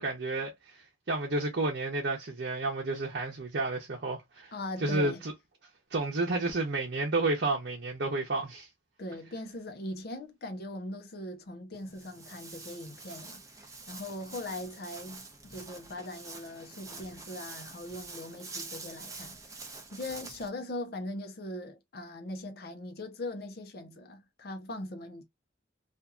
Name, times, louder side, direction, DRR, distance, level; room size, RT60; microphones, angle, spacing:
voice 1, 0.0-4.5 4.8-5.3 5.9-8.7, right 2 dB, 60° right, 0.8 m, -31 dB
voice 2, 4.5-5.2 9.0-19.6 19.9-25.2, left 1 dB, 55° left, 0.7 m, -40 dB
Walk footsteps, 11.7-20.5, right 3 dB, 20° right, 0.6 m, -46 dB
2.7 x 2.5 x 2.3 m
head